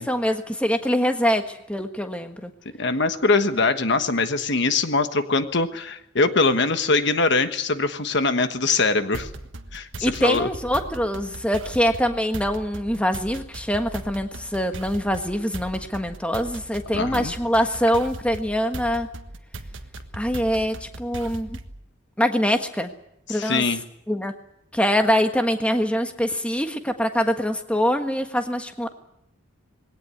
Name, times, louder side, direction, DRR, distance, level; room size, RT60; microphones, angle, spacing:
voice 1, 0.0-2.5 10.0-19.1 20.1-21.6 22.2-22.9 23.3-23.6 24.1-24.3 24.7-28.9, equal, 5° left, 6 dB, 1.4 m, -24 dB
voice 2, 2.8-9.3 9.7-10.5 16.9-17.3 23.3-23.8, left 3 dB, 55° left, 9 dB, 1.3 m, -22 dB
sound 1, 9.1-21.8, right 2 dB, 65° right, 1.5 m, -38 dB
21.0 x 18.0 x 9.6 m, 0.79 s
head